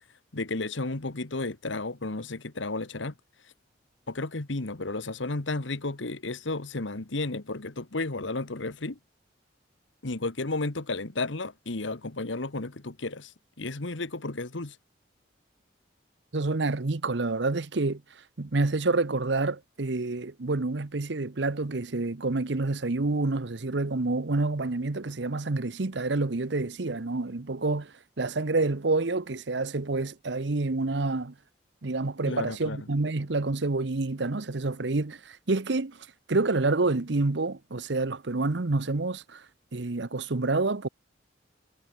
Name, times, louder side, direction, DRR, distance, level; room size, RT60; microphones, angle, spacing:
voice 1, 0.3-3.1 4.1-9.0 10.0-13.3 13.6-14.8 32.3-32.8, left 2 dB, 80° left, 1.5 m, -33 dB
voice 2, 16.3-18.0 18.4-27.9 28.2-31.3 31.8-36.0 36.3-39.4 39.7-40.9, right 3 dB, 70° right, 0.9 m, -28 dB
head